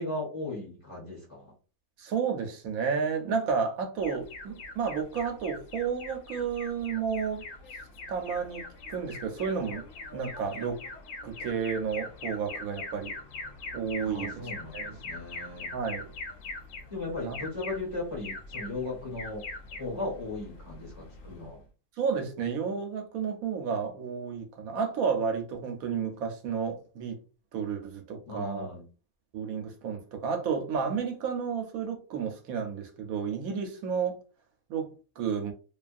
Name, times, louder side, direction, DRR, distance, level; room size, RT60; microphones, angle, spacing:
voice 1, 0.0-1.5 14.0-15.7 16.9-19.5 19.8-21.6 28.3-28.8, left 2 dB, 25° left, 1.2 m, -37 dB
voice 2, 2.0-7.4 8.1-8.6 8.9-9.9 10.1-10.8 11.2-13.1 13.7-15.0 15.7-16.1 17.2-17.4 22.0-27.2 27.5-28.7 29.3-34.2 34.7-35.5, right 6 dB, 80° right, 1.1 m, -31 dB
Alarm, 4.0-21.6, left 3 dB, 70° left, 1.0 m, -42 dB
2.7 x 2.4 x 2.5 m
omnidirectional pair, 1.5 m